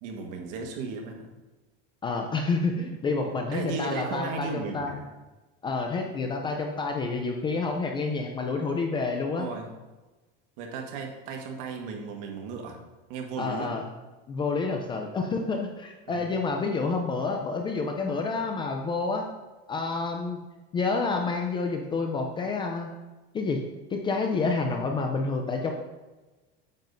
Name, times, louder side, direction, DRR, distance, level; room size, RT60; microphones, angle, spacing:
voice 1, 0.0-1.2 3.2-5.1 9.4-9.7 10.6-12.8 13.1-13.8 16.1-16.4, right 5 dB, 60° right, 3 dB, 1.5 m, -35 dB
voice 2, 2.0-5.0 5.6-9.5 13.4-13.8 14.3-19.3 19.7-20.4 20.7-22.9 23.3-23.6 23.9-25.7, left 4 dB, 15° left, 3 dB, 0.4 m, -29 dB
9.1 x 7.3 x 2.6 m, 1.1 s
supercardioid pair, 160°, 30 cm